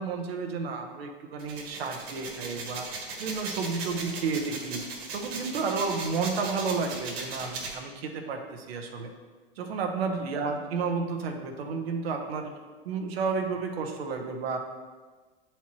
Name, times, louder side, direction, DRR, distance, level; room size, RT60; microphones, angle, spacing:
voice 1, 0.0-2.9 3.2-4.8 5.1-9.1 9.6-12.5 12.8-14.6, right 4 dB, 75° right, 4 dB, 1.0 m, -31 dB
sound 1, 1.4-7.7, right 4 dB, 60° right, 1.6 m, -37 dB
8.1 x 4.5 x 3.0 m, 1.4 s
hypercardioid pair, 105°, 31 cm